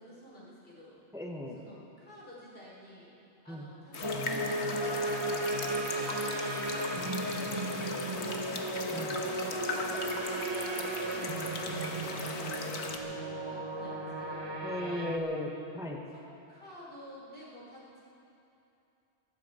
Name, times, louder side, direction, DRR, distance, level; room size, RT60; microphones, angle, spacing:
voice 1, 0.0-1.0 1.5-3.1 3.4-8.5 8.9-14.6 16.1-18.0, left 1 dB, 55° left, -6 dB, 4.4 m, -52 dB
voice 2, 1.1-1.6 3.5-3.7 8.9-9.2 14.6-16.0, left 1 dB, 5° right, 1 dB, 1.1 m, -36 dB
sound 1, 3.9-13.0, left 3 dB, 70° left, 1.5 m, -38 dB
sound 2, 4.0-15.2, right 2 dB, 25° right, 1.1 m, -35 dB
23.5 x 13.0 x 4.4 m, 2.8 s
omnidirectional pair, 1.2 m